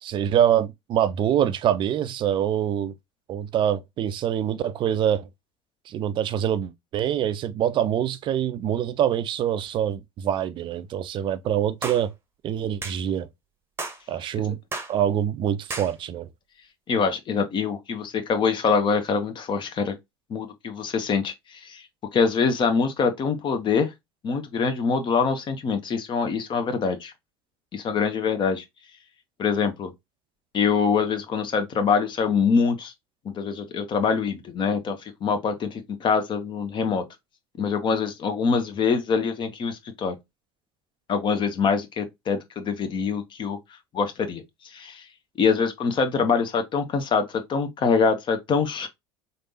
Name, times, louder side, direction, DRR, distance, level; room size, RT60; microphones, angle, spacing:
voice 1, 0.0-2.9 3.3-5.3 5.9-12.1 12.4-13.3 14.1-14.6 14.9-16.3, right 10 dB, 40° right, 0.5 m, -25 dB
sound 1, 11.8-12.0 12.8-13.0 13.8-14.0 14.7-14.9 15.7-15.9, right 3 dB, 20° right, 0.9 m, -32 dB
voice 2, 16.9-19.9 20.3-21.8 22.1-23.9 24.2-27.1 27.7-28.6 29.4-29.9 30.5-32.9 33.2-37.0 37.6-40.2 41.1-43.6 43.9-44.4 44.7-45.0 45.4-48.9, left 5 dB, 40° left, 0.9 m, -24 dB
4.0 x 3.4 x 2.7 m
figure-of-eight pair, 65°, 13 cm